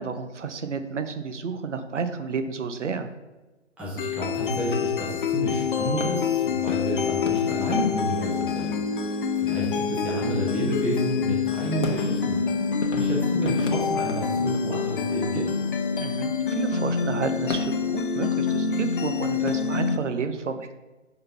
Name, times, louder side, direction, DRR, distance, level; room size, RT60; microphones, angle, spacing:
voice 1, 0.0-3.1 16.0-20.7, right 5 dB, 70° right, 8 dB, 0.7 m, -31 dB
voice 2, 3.8-12.4 12.9-15.5, equal, 5° right, -6 dB, 0.7 m, -30 dB
sound 1, 4.0-20.0, left 6 dB, 45° left, 0.5 m, -26 dB
sound 2, 5.9-19.5, left 3 dB, 80° left, 1.0 m, -39 dB
5.4 x 4.0 x 5.5 m, 1.2 s
figure-of-eight pair, 135°, 37 cm